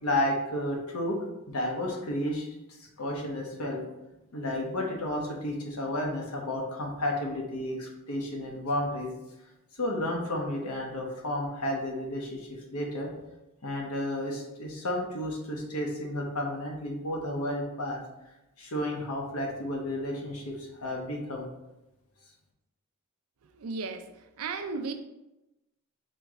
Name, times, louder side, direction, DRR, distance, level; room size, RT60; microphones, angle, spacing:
voice 1, 0.0-3.8 4.3-9.1 9.8-13.1 13.6-18.0 18.6-21.5, left 1 dB, 85° left, 0 dB, 1.1 m, -32 dB
voice 2, 23.4-24.9, right 4 dB, 80° right, 7 dB, 0.5 m, -35 dB
4.5 x 3.0 x 3.6 m, 0.95 s
head